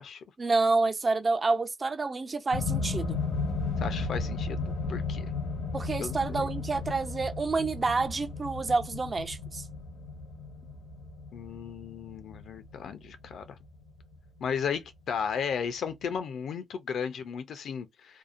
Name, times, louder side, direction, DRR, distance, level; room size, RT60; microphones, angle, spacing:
voice 1, 0.4-3.2 5.7-9.6, right 3 dB, 30° right, 0.4 m, -28 dB
sound 1, 2.5-14.7 15.6-15.7, left 4 dB, 80° left, 1.1 m, -34 dB
voice 2, 3.8-5.3 6.0-6.5 11.3-13.6 14.4-18.2, left 7 dB, 65° left, 0.5 m, -35 dB
2.7 x 2.0 x 2.5 m
cardioid pair, 90°, 0 cm